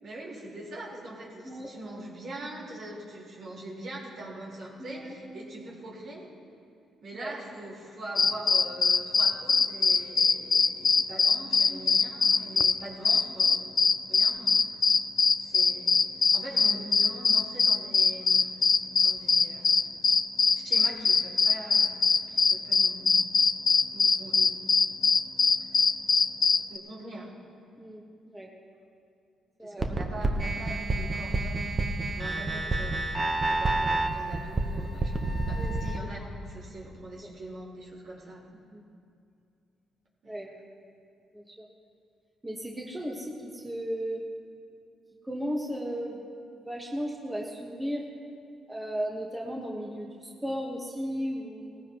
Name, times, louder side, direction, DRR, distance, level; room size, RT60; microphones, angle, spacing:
voice 1, 0.0-6.3 7.0-13.7 14.1-14.8 15.4-16.0 16.3-18.6 19.0-19.7 20.5-22.0 22.3-23.1 23.9-24.6 26.7-27.3 29.6-33.1 33.5-38.5 40.2-40.4, right 1 dB, 60° right, -4 dB, 4.2 m, -43 dB
voice 2, 4.8-5.1 7.1-7.3 11.7-11.8 27.8-28.5 29.6-29.9 35.5-35.7 38.7-38.8 40.3-40.5 41.3-41.6 42.4-44.2 45.3-46.2 46.6-48.0 48.7-51.8, equal, 10° right, -2 dB, 1.4 m, -35 dB
sound 1, 8.2-12.8 13.0-26.8, left 5 dB, 40° left, 0.4 m, -22 dB
sound 2, 29.8-36.0, right 2 dB, 30° right, 1.0 m, -28 dB
18.5 x 15.0 x 3.0 m, 2.5 s
cardioid pair, 90°, 0 cm